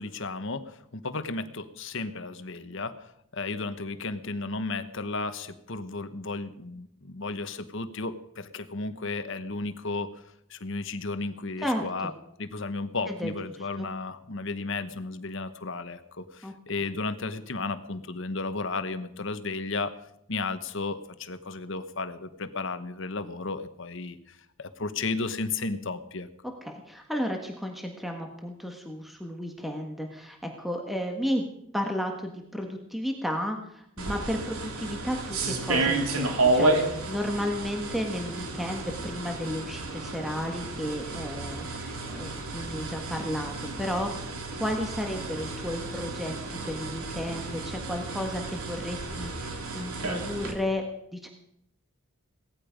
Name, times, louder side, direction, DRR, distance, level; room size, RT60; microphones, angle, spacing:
voice 1, 0.0-10.1 10.5-12.1 12.4-19.9 20.3-26.3, left 3 dB, 60° left, 11 dB, 1.2 m, -34 dB
voice 2, 11.6-12.1 13.1-13.3 13.8-13.9 16.4-16.5 26.6-31.4 31.7-46.3 46.6-50.8 51.1-51.3, equal, ahead, 2 dB, 1.5 m, -33 dB
sound 1, 34.0-50.5, right 2 dB, 80° right, 2.7 m, -31 dB
18.0 x 14.0 x 5.2 m, 0.76 s
head